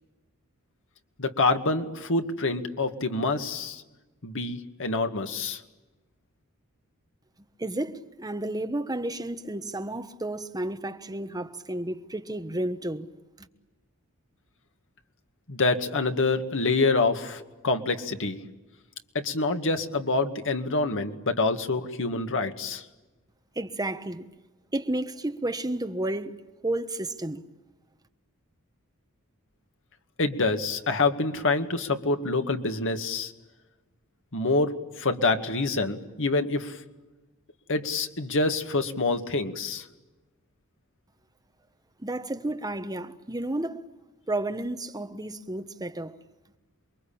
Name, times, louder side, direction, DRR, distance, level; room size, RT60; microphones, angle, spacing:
voice 1, 1.2-3.8 4.2-5.6 15.5-18.4 19.1-22.9 30.2-33.3 34.3-36.8 37.7-39.9, left 3 dB, 60° left, 2.1 m, -26 dB
voice 2, 7.6-13.1 13.4-13.5 23.5-24.3 24.7-26.4 26.6-27.4 42.0-43.9 44.3-46.2, right 1 dB, 15° right, 1.3 m, -32 dB
28.0 x 23.0 x 8.8 m
head